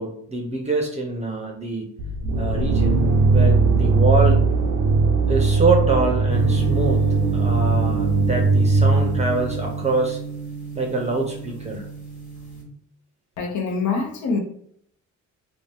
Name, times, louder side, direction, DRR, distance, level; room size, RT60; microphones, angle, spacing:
voice 1, 0.0-1.9 2.4-4.4 5.3-7.1 7.3-10.2 10.7-11.8, right 3 dB, 20° right, 1 dB, 0.6 m, -25 dB
sound 1, 2.0-9.8, right 3 dB, 75° right, 0.5 m, -19 dB
sound 2, 6.3-12.6, right 4 dB, 25° left, 1.2 m, -30 dB
voice 2, 13.4-14.4, left 4 dB, 70° left, 4 dB, 0.7 m, -24 dB
2.7 x 2.1 x 3.3 m, 0.66 s
cardioid pair, 90°, 30 cm